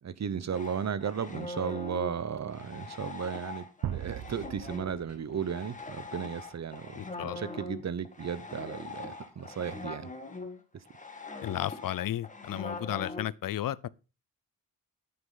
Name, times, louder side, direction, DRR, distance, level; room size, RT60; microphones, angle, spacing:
voice 1, 0.0-10.1, right 7 dB, 50° right, 1.0 m, -35 dB
sound 1, 0.5-13.2, left 3 dB, 20° left, 1.7 m, -42 dB
sound 2, 3.8-5.8, right 11 dB, 75° right, 0.7 m, -38 dB
voice 2, 6.9-7.4 11.4-13.9, left 12 dB, 70° left, 0.6 m, -33 dB
9.7 x 9.7 x 3.9 m
wide cardioid pair, 110°, 35 cm